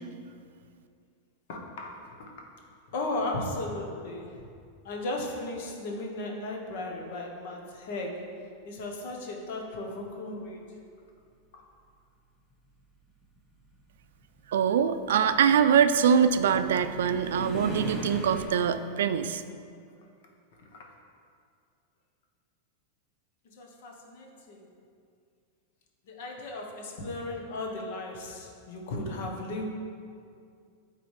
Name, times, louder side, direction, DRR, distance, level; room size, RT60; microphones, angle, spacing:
voice 1, 1.5-2.5 2.9-4.5 4.8-8.3 8.6-10.6 11.5-11.6 20.6-20.9 23.5-24.7 26.1-29.7, left 2 dB, 60° left, 1 dB, 1.0 m, -36 dB
sound 1, 11.2-11.3 12.4-18.5, equal, 5° left, 1.0 m, -41 dB
voice 2, 14.5-19.4, right 7 dB, 90° right, 11 dB, 0.3 m, -23 dB
9.3 x 4.0 x 3.3 m, 2.3 s
supercardioid pair, 155°, 0 cm